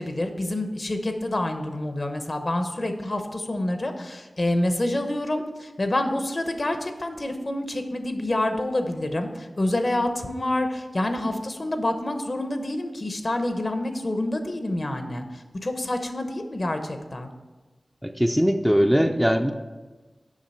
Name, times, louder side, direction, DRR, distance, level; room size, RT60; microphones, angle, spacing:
voice 1, 0.0-17.3, left 1 dB, 45° left, 6 dB, 0.9 m, -27 dB
voice 2, 18.0-19.5, equal, 5° right, 4 dB, 0.5 m, -20 dB
7.4 x 5.7 x 5.5 m, 1.2 s
wide cardioid pair, 65°, 0 cm